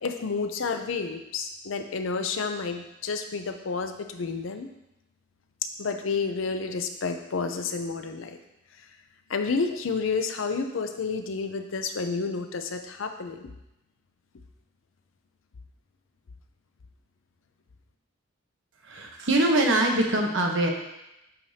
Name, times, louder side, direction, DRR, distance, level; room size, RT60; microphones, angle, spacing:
voice 1, 0.0-4.7 5.8-8.4 8.8-8.9 9.3-13.5, left 4 dB, 75° left, 6 dB, 0.6 m, -30 dB
voice 2, 18.8-20.7, right 1 dB, 70° right, 1 dB, 1.0 m, -23 dB
8.6 x 4.9 x 2.8 m, 0.90 s
head